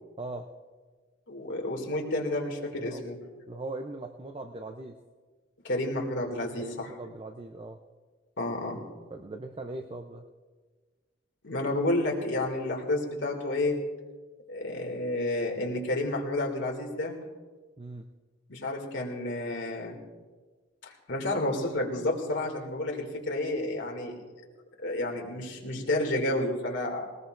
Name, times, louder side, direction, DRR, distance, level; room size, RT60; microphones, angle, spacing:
voice 1, 0.2-0.5 2.7-3.0 3.5-5.0 6.6-7.8 9.1-10.3 17.8-18.1, right 2 dB, 30° right, 4 dB, 0.6 m, -40 dB
voice 2, 1.3-3.2 5.6-6.9 8.4-8.8 11.4-13.8 14.5-17.1 18.5-20.0 20.9-24.1 24.8-27.0, left 1 dB, 65° left, 0 dB, 2.5 m, -30 dB
20.0 x 19.5 x 2.6 m, 1.4 s
head